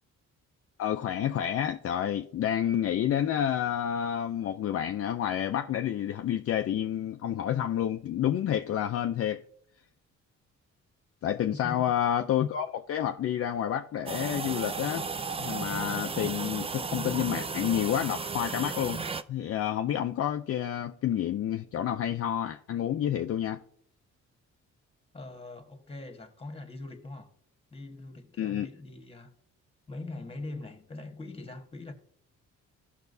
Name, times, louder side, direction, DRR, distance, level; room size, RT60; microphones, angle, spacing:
voice 1, 0.8-9.4 11.2-15.1 15.4-23.6 28.4-28.7, left 10 dB, 50° left, 0.5 m, -29 dB
sound 1, 14.1-19.2, right 4 dB, 20° right, 0.4 m, -34 dB
voice 2, 25.1-27.3 27.7-29.3 29.9-31.9, left 2 dB, 20° left, 1.4 m, -42 dB
15.0 x 5.8 x 2.7 m
cardioid pair, 90°, 30 cm